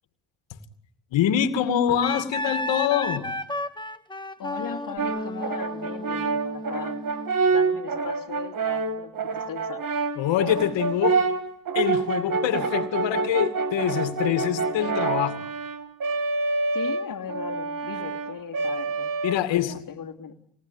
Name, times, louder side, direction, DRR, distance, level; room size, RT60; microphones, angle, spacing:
voice 1, 1.1-3.4 10.2-11.2 11.7-15.5 19.2-19.8, left 10 dB, 70° left, 2.5 m, -25 dB
Wind instrument woodwind instrument, 2.0-7.4, left 1 dB, 10° left, 1.3 m, -33 dB
voice 2, 4.4-7.0 7.5-9.9 16.7-20.4, left 7 dB, 45° left, 2.7 m, -38 dB
Brass instrument, 5.0-19.8, right 4 dB, 45° right, 2.2 m, -27 dB
27.5 x 19.5 x 9.9 m
cardioid pair, 90°, 47 cm